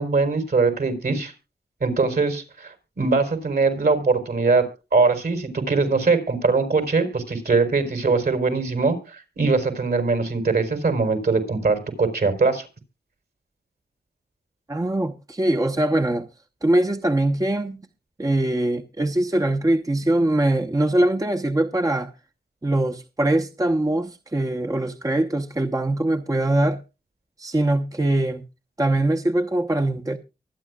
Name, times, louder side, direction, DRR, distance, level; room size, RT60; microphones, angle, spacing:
voice 1, 0.0-1.3 1.8-4.6 4.9-12.7, right 4 dB, 65° right, 4.4 m, -22 dB
voice 2, 14.7-16.3 16.6-17.9 18.2-22.1 22.6-26.8 27.4-28.4 28.8-30.2, right 1 dB, 20° right, 1.0 m, -22 dB
24.0 x 9.2 x 2.3 m
wide cardioid pair, 65°, 17 cm